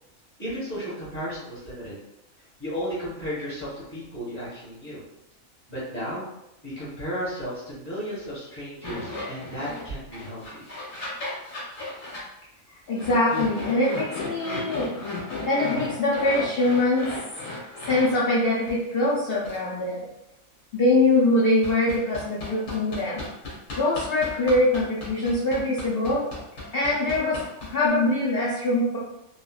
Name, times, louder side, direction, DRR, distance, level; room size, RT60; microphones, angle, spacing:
voice 1, 0.4-1.9 2.6-5.0 5.7-6.2 6.6-10.6, equal, 10° left, -10 dB, 1.4 m, -34 dB
sound 1, 8.8-9.8 10.1-12.2 13.0-18.2 18.6-18.7 19.4-19.6 21.6-27.9, left 2 dB, 75° left, 1.3 m, -35 dB
voice 2, 12.9-15.0 15.5-17.1 17.5-20.1 20.7-23.2 23.8-26.2 26.7-29.0, left 2 dB, 55° left, -6 dB, 0.7 m, -23 dB
3.1 x 2.3 x 2.3 m, 0.86 s
omnidirectional pair, 1.4 m